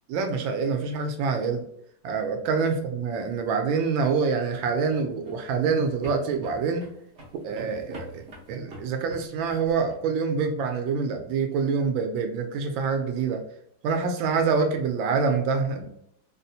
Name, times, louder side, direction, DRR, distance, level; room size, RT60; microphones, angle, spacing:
voice 1, 0.1-1.6 2.0-6.8 7.4-13.4 13.8-15.9, right 5 dB, 75° right, 5 dB, 1.3 m, -26 dB
sound 1, 4.5-10.0, equal, 55° right, 0.7 m, -46 dB
4.0 x 2.1 x 2.7 m, 0.70 s
omnidirectional pair, 2.2 m